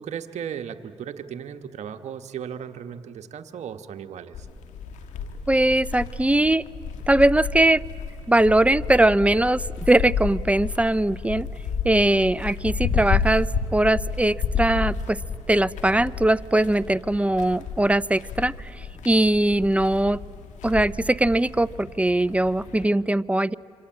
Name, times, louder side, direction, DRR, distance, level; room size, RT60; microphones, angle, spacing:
voice 1, 0.0-4.5, right 8 dB, 70° right, 7 dB, 1.3 m, -36 dB
sound 1, 4.3-22.9, left 5 dB, 80° left, 1.9 m, -31 dB
voice 2, 5.5-6.6 7.1-7.8 8.3-11.5 11.8-13.5 13.7-15.2 15.5-20.2 20.6-23.5, right 1 dB, 10° right, 18 dB, 0.6 m, -21 dB
26.0 x 25.5 x 8.8 m, 2.6 s
supercardioid pair, 55°, 12 cm